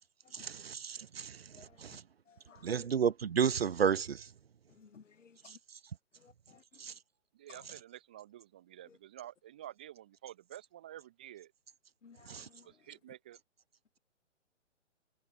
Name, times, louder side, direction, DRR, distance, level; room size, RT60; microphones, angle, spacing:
voice 1, 0.3-1.5 1.8-2.0 2.6-4.3 5.5-5.6 6.8-6.9 12.3-12.5, right 7 dB, 55° right, 0.9 m, -32 dB
voice 2, 2.3-2.9 4.8-5.6 6.2-6.6 7.5-7.6 12.0-12.7, left 6 dB, 90° left, 0.6 m, -58 dB
voice 3, 7.3-11.5 12.6-13.4, right 12 dB, 10° right, 0.5 m, -50 dB
figure-of-eight pair, 130°, 36 cm